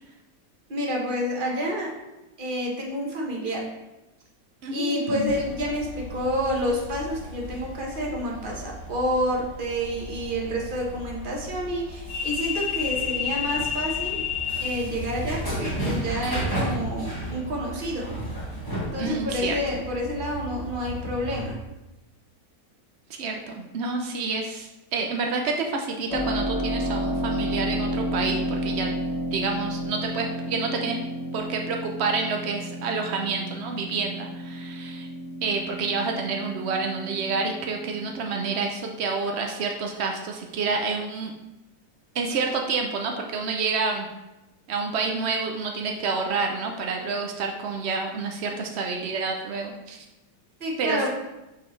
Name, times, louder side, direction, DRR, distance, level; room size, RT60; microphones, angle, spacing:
voice 1, 0.7-1.9 2.4-3.7 4.7-14.2 14.6-18.1 18.9-21.6 50.6-51.1, equal, 35° right, -1 dB, 1.2 m, -29 dB
voice 2, 4.6-5.3 19.0-19.6 23.1-28.9 29.3-31.0 31.3-35.1 35.4-41.3 42.1-44.1 44.7-50.0 50.8-51.1, right 4 dB, 80° right, 2 dB, 0.5 m, -28 dB
sound 1, 5.2-21.5, left 2 dB, 15° left, 1.7 m, -32 dB
Keyboard (musical), 26.1-38.6, equal, 90° left, 2.0 m, -31 dB
6.1 x 5.8 x 3.1 m, 0.99 s
omnidirectional pair, 1.9 m